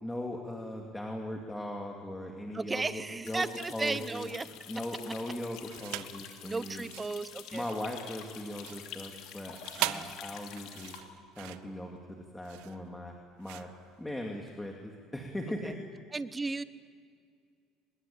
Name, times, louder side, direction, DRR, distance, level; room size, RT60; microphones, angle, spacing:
voice 1, 0.0-3.4 3.7-4.3 4.7-6.8 7.5-11.0 11.4-13.7 14.0-15.7, left 1 dB, 10° left, 1 dB, 2.4 m, -39 dB
voice 2, 2.5-4.5 6.4-7.6 9.8-10.1 15.6-15.7 16.1-16.6, right 3 dB, 15° right, 14 dB, 0.9 m, -35 dB
sound 1, 3.2-11.0, left 9 dB, 75° left, 2.9 m, -47 dB
sound 2, 5.7-6.2 6.7-14.6, right 16 dB, 85° right, 0.9 m, -40 dB
24.0 x 21.5 x 8.7 m, 2.2 s
cardioid pair, 120°, 0 cm